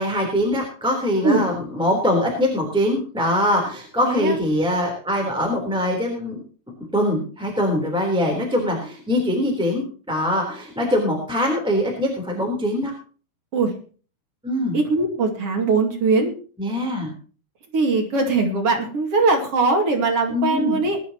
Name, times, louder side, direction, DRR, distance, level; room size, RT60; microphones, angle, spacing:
voice 1, 0.0-6.4 6.9-12.9 14.4-14.8 16.6-17.1 20.3-20.8, left 1 dB, ahead, 0 dB, 3.2 m, -23 dB
voice 2, 4.1-4.4 13.5-13.7 14.7-16.3 17.7-21.0, right 3 dB, 45° right, 3 dB, 3.1 m, -20 dB
20.5 x 11.5 x 2.9 m, 0.38 s
omnidirectional pair, 3.8 m